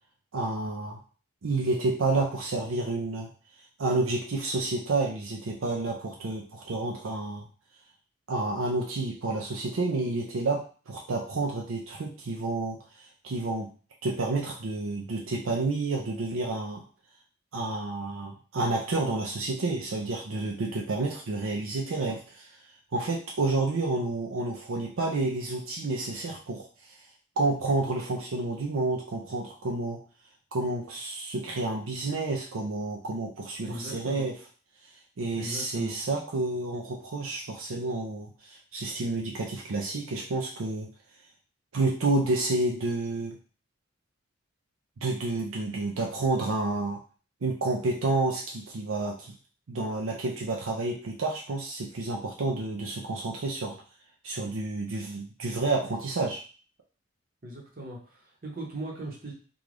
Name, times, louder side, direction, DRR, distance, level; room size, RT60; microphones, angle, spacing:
voice 1, 0.3-1.0 1.4-3.3 3.8-7.5 8.3-13.7 14.0-16.8 17.5-22.5 22.9-26.7 27.4-30.0 30.5-34.3 35.2-40.9 41.7-43.4 45.0-47.0 47.4-49.3 49.7-53.8 54.2-56.4, right 2 dB, 80° right, 0 dB, 0.5 m, -30 dB
voice 2, 33.6-34.3 35.4-35.9 57.4-59.3, right 1 dB, 45° right, -1 dB, 0.9 m, -39 dB
3.7 x 2.4 x 3.3 m, 0.38 s
head